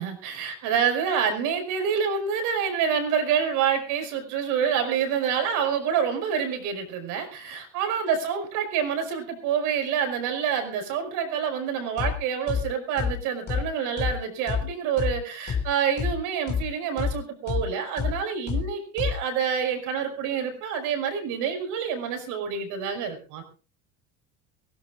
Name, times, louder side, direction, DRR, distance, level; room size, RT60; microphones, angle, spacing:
voice 1, 0.0-23.4, right 7 dB, 60° right, 6 dB, 5.6 m, -27 dB
sound 1, 12.0-12.1 12.5-12.6 13.0-13.1 13.5-13.6 14.0-14.1 14.5-14.6 15.0-15.1 15.5-15.6 16.0-16.1 16.5-16.6 17.0-17.1 17.5-17.6 18.0-18.1 18.5-18.6 19.0-19.1, left 6 dB, 30° left, 3.5 m, -27 dB
23.5 x 16.5 x 2.5 m, 0.35 s
supercardioid pair, 125°, 34 cm